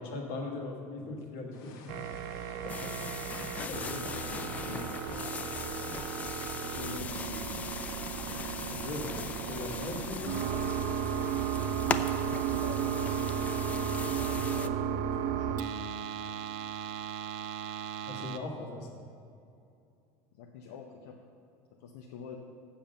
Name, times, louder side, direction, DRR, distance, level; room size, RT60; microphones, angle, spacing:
voice 1, 0.0-1.9 2.6-3.8 8.7-9.2 9.5-10.4 18.1-18.9, left 3 dB, 70° left, 2 dB, 1.7 m, -40 dB
sound 1, 1.5-11.3, left 4 dB, 50° left, 1.0 m, -52 dB
sound 2, 1.9-18.4, right 8 dB, 60° right, 0.5 m, -34 dB
sound 3, 2.7-14.7, left 5 dB, 20° left, 0.3 m, -40 dB
voice 2, 3.5-5.1 6.6-7.6 12.2-15.8 20.3-21.2 21.8-22.4, left 6 dB, 90° left, 1 dB, 0.8 m, -45 dB
7.4 x 7.2 x 6.8 m, 2.6 s
cardioid pair, 160°, 8 cm